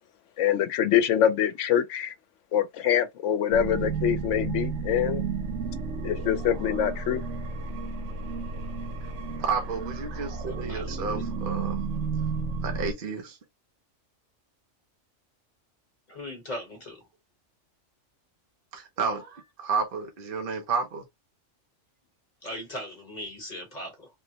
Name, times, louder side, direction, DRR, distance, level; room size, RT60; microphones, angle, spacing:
voice 1, 0.4-2.1 2.5-5.2 6.0-7.2, left 9 dB, 75° left, 0.9 m, -24 dB
sound 1, 3.5-12.9, right 4 dB, 75° right, 1.0 m, -32 dB
voice 2, 9.4-11.9 12.6-13.4 18.7-21.0, right 5 dB, 55° right, 0.7 m, -31 dB
voice 3, 10.7-11.3 16.1-17.0 22.4-24.1, left 1 dB, 35° left, 1.1 m, -39 dB
3.6 x 2.1 x 2.7 m
omnidirectional pair, 1.3 m